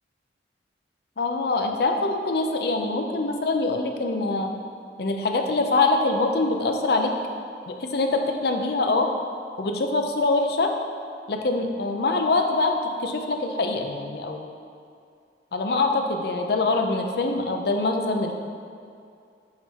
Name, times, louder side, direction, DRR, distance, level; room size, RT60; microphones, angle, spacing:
voice 1, 1.2-4.5 5.0-7.1 7.7-9.1 9.6-10.7 11.3-12.7 13.0-14.5 15.5-18.3, left 3 dB, 55° left, 4 dB, 0.5 m, -24 dB
5.7 x 4.3 x 4.3 m, 2.4 s
head